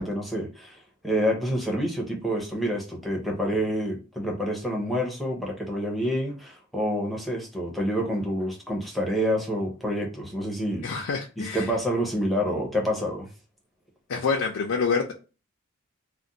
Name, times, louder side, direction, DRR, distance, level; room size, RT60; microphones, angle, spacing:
voice 1, 0.0-10.9 11.4-13.3, equal, ahead, 0.6 m, -28 dB
voice 2, 10.8-11.7 14.1-15.1, left 5 dB, 85° left, 0.4 m, -27 dB
2.5 x 2.1 x 3.9 m
head